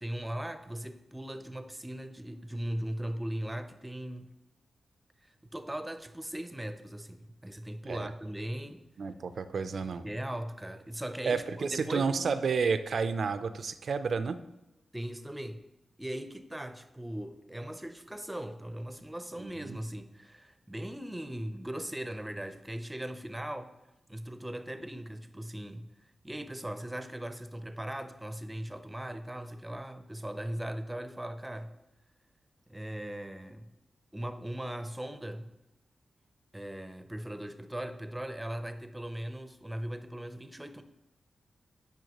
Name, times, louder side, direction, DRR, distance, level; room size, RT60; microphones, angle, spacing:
voice 1, 0.0-4.3 5.2-8.8 10.0-12.3 14.9-15.6 16.0-23.7 24.1-31.7 32.7-33.7 34.1-35.5 36.5-40.8, right 1 dB, 10° right, 9 dB, 0.6 m, -39 dB
voice 2, 9.0-10.0 11.3-14.4 19.4-19.8, right 5 dB, 70° right, 11 dB, 0.4 m, -31 dB
9.1 x 5.4 x 3.0 m, 0.96 s
cardioid pair, 65°, 0 cm